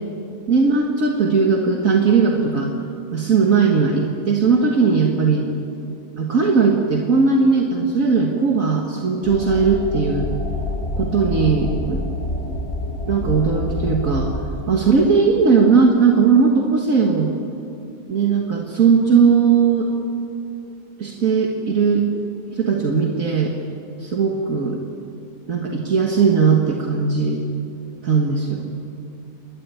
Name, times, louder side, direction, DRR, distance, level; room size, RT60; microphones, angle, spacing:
voice 1, 0.5-2.7 3.1-5.5 6.2-10.3 11.0-12.1 13.1-14.3 14.7-17.3 18.1-19.9 21.0-22.1 22.5-23.5 24.0-24.8 25.5-27.4 28.0-28.7, right 5 dB, 60° right, 0 dB, 2.0 m, -18 dB
sound 1, 9.2-14.4, left 1 dB, 50° left, 4.4 m, -27 dB
29.5 x 13.0 x 9.3 m, 2.6 s
omnidirectional pair, 1.6 m